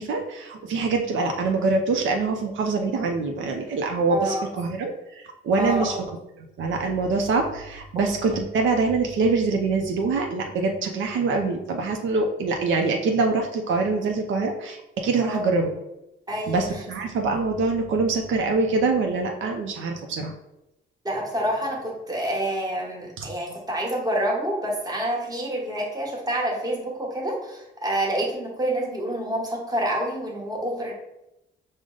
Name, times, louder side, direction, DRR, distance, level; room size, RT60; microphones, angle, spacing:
voice 1, 0.0-5.9 6.4-15.7 16.5-20.3 23.2-23.3, right 3 dB, 75° right, 3 dB, 0.5 m, -24 dB
voice 2, 4.1-4.4 5.6-5.9 15.2-15.5 16.3-16.6 21.0-30.9, right 1 dB, 20° right, -2 dB, 1.2 m, -27 dB
4.9 x 2.1 x 3.8 m, 0.92 s
cardioid pair, 90°, 20 cm